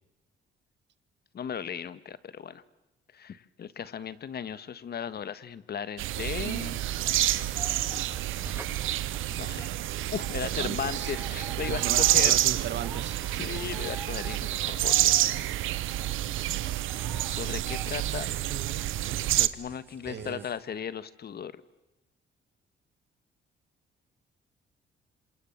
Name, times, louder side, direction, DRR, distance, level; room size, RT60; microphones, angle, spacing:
voice 1, 1.3-2.6 3.1-6.8 9.3-9.7 10.1-12.4 13.3-15.2 17.2-18.3 19.3-21.6, left 8 dB, 55° left, 15 dB, 1.7 m, -36 dB
sound 1, 6.0-19.5, right 14 dB, 85° right, 1.0 m, -28 dB
sound 2, 6.9-20.6, right 2 dB, 10° right, 7.2 m, -47 dB
voice 2, 10.4-11.1 11.6-13.2 18.1-18.8 20.1-20.4, right 9 dB, 65° right, 14 dB, 1.7 m, -37 dB
28.0 x 27.0 x 7.6 m, 0.99 s
cardioid pair, 90°, 20 cm